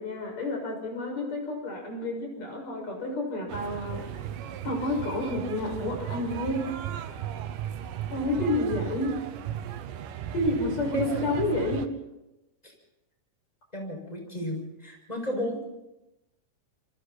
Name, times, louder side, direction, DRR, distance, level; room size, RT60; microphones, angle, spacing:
voice 1, 0.0-4.0 4.6-6.7 8.1-9.2 10.3-11.9, left 2 dB, 50° left, 1 dB, 7.4 m, -29 dB
sound 1, 3.5-11.9, right 10 dB, 80° right, 2.7 m, -36 dB
voice 2, 10.9-11.2 13.7-15.6, equal, 10° left, 0 dB, 6.5 m, -33 dB
28.0 x 25.5 x 4.4 m, 0.94 s
omnidirectional pair, 3.8 m